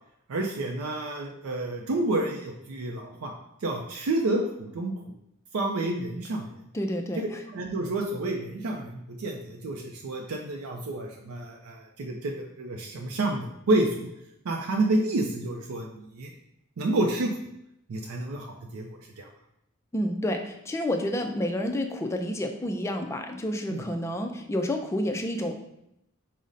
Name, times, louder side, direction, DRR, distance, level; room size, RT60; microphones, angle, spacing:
voice 1, 0.3-3.3 3.6-5.0 5.5-6.5 7.2-14.1 14.4-16.3 16.8-17.4 17.9-18.9 19.2-19.3 23.7-23.8, right 2 dB, 70° right, 1 dB, 0.4 m, -29 dB
voice 2, 6.7-7.4 19.9-25.5, left 1 dB, 15° left, 4 dB, 0.3 m, -29 dB
5.0 x 2.1 x 3.9 m, 0.80 s
head